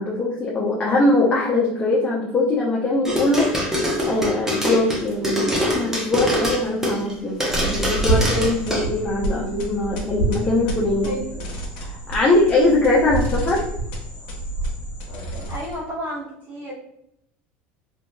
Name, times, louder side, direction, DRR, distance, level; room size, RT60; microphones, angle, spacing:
voice 1, 0.0-3.6 4.0-7.4 7.6-11.2 11.8-13.7, left 2 dB, 25° left, -4 dB, 0.6 m, -21 dB
sound 1, 3.1-7.1 7.4-8.8, equal, 10° right, 0.8 m, -23 dB
sound 2, 7.5-15.9, right 2 dB, 75° left, 0.8 m, -28 dB
voice 2, 9.2-9.5 11.0-11.4 15.5-16.7, equal, 35° right, -7 dB, 1.2 m, -32 dB
2.8 x 2.7 x 2.2 m, 0.76 s
supercardioid pair, 120°, 5 cm